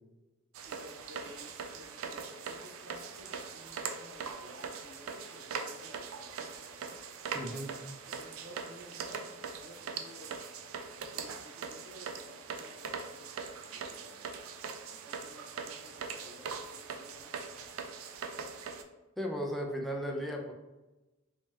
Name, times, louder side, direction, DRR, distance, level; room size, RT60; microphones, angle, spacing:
sound 1, 0.5-18.8, right 5 dB, 90° right, 0.4 m, -41 dB
voice 1, 0.6-7.0 8.1-10.5 10.9-14.3 14.9-17.7, equal, 65° right, 1 dB, 0.8 m, -54 dB
voice 2, 7.3-7.7 19.2-20.5, equal, ahead, 1 dB, 0.4 m, -35 dB
3.4 x 2.8 x 3.1 m, 1.1 s
head